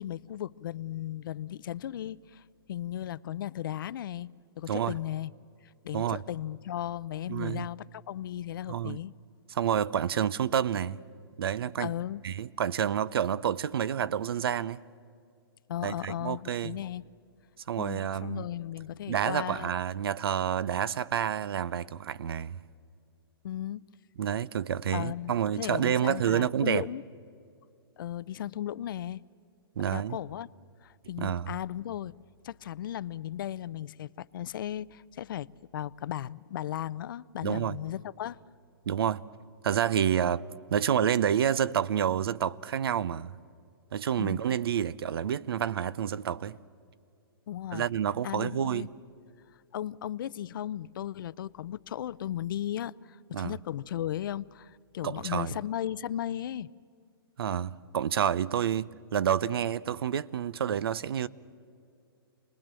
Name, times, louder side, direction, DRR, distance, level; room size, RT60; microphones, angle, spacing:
voice 1, 0.0-5.3 5.8-9.1 11.8-12.2 15.7-17.1 17.8-19.7 23.4-23.8 24.9-27.0 28.0-29.2 29.9-30.5 30.8-32.2 32.4-35.5 35.7-38.4 44.2-44.4 47.5-47.8 48.2-48.9 49.7-56.7, left 11 dB, 60° left, 0.5 m, -36 dB
voice 2, 7.3-7.7 8.7-9.0 9.5-11.0 11.4-11.9 12.2-14.8 15.8-16.8 17.7-18.5 19.1-22.6 24.2-26.9 29.8-30.2 31.2-31.5 37.4-37.8 38.9-39.2 39.6-43.3 43.9-46.6 47.7-48.9 53.3-53.6 55.0-55.5 57.4-61.3, right 9 dB, 70° right, 0.7 m, -29 dB
27.5 x 20.5 x 7.6 m
hypercardioid pair, 145°, 13 cm